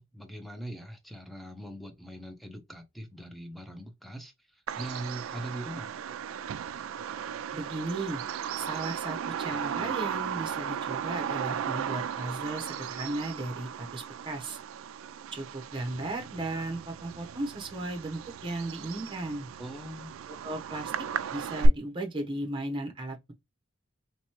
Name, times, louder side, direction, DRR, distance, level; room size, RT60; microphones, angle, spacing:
voice 1, 0.0-5.9 19.6-20.1, right 1 dB, ahead, 0.6 m, -41 dB
Bird vocalization bird call bird song, 4.7-21.7, right 7 dB, 75° right, 0.3 m, -35 dB
voice 2, 7.5-8.2 8.6-14.6 15.3-19.5 20.4-20.9 21.3-23.3, right 2 dB, 25° right, 0.9 m, -36 dB
3.3 x 3.0 x 2.9 m
head